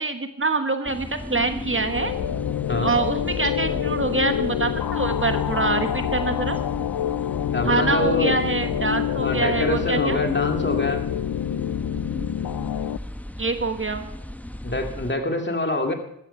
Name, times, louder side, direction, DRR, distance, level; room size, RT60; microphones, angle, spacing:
voice 1, 0.0-2.1 2.8-6.6 7.6-10.2 13.4-14.1, right 3 dB, 35° right, 8 dB, 1.3 m, -25 dB
sound 1, 0.9-15.1, equal, 5° left, 0.9 m, -36 dB
sound 2, 1.4-13.0, left 11 dB, 85° left, 0.5 m, -27 dB
voice 2, 7.5-8.3 9.2-11.1 14.6-15.9, left 1 dB, 30° left, 4 dB, 2.5 m, -25 dB
14.0 x 13.5 x 5.5 m, 0.73 s
cardioid pair, 55°, 36 cm